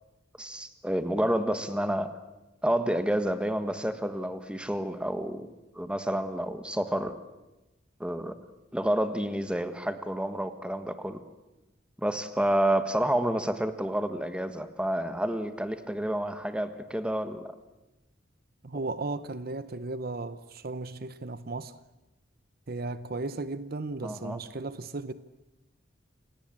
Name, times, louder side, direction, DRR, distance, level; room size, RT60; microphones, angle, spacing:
voice 1, 0.4-2.1 2.6-5.5 5.7-7.1 8.0-8.3 8.7-11.2 12.0-17.5 24.0-24.4, right 1 dB, 5° right, 1.5 m, -29 dB
voice 2, 18.6-21.8 22.7-25.1, right 3 dB, 50° right, 0.8 m, -35 dB
28.5 x 18.5 x 8.8 m
head